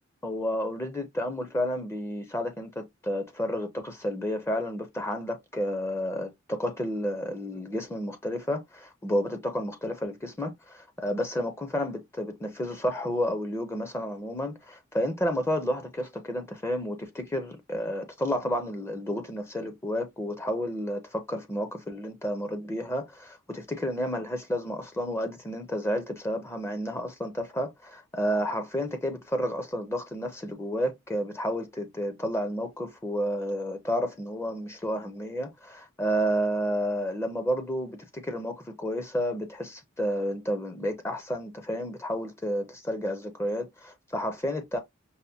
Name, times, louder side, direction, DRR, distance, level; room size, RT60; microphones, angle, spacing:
voice 1, 0.2-44.8, equal, 15° left, 0.5 m, -31 dB
5.5 x 2.1 x 2.7 m
head